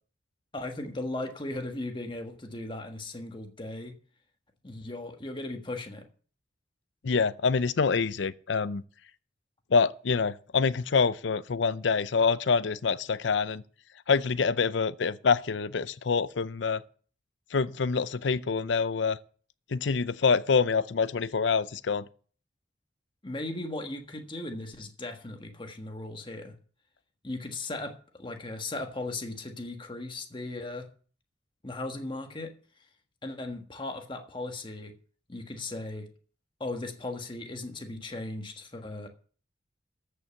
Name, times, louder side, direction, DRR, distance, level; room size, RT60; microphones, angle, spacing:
voice 1, 0.5-3.9 4.6-6.0 23.2-26.5 27.2-30.9 31.6-32.5 33.2-34.9 35.3-36.1 36.6-39.1, left 2 dB, 25° left, 1.4 m, -37 dB
voice 2, 7.0-8.8 9.7-13.6 14.1-16.8 17.5-19.2 19.7-22.1, left 5 dB, 75° left, 0.5 m, -26 dB
14.0 x 5.5 x 7.0 m
head